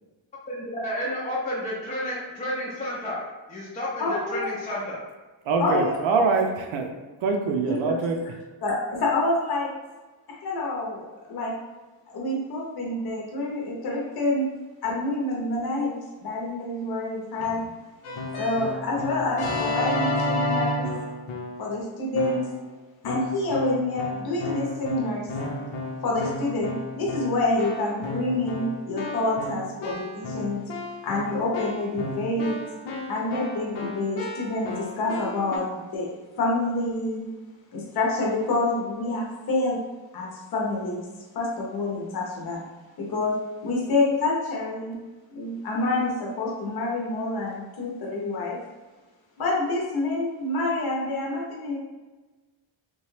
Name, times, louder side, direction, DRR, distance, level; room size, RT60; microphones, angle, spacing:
voice 1, 0.5-3.2 3.5-5.0 5.7-5.8, left 1 dB, 15° left, -6 dB, 0.4 m, -31 dB
voice 2, 4.0-4.6 5.6-6.0 7.7-8.0 8.6-9.7 10.3-11.5 12.1-14.5 14.8-17.6 18.4-20.9 21.6-22.5 23.0-25.3 26.0-30.6 31.0-32.6 33.1-37.3 37.7-41.1 41.3-42.6 43.0-45.0 45.3-48.6 49.4-51.8, left 2 dB, 50° left, -3 dB, 0.7 m, -27 dB
voice 3, 5.4-6.9 7.2-8.2, right 4 dB, 75° right, 3 dB, 0.5 m, -24 dB
Keyboard (musical), 18.0-21.7 22.1-22.6 23.0-35.6, left 2 dB, 85° left, 0.9 m, -32 dB
2.9 x 2.2 x 3.1 m, 1.2 s
wide cardioid pair, 150°, 49 cm